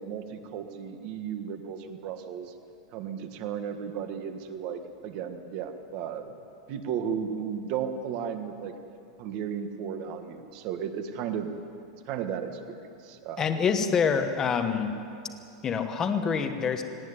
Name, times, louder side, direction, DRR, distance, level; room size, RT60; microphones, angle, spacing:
voice 1, 0.0-2.5 2.9-6.3 6.7-8.7 9.2-11.5 12.0-13.5, right 7 dB, 35° right, 7 dB, 1.6 m, -34 dB
voice 2, 13.4-14.9 15.6-16.8, left 6 dB, 15° left, 7 dB, 1.2 m, -26 dB
19.0 x 18.5 x 9.7 m, 2.6 s
supercardioid pair, 175°, 3 cm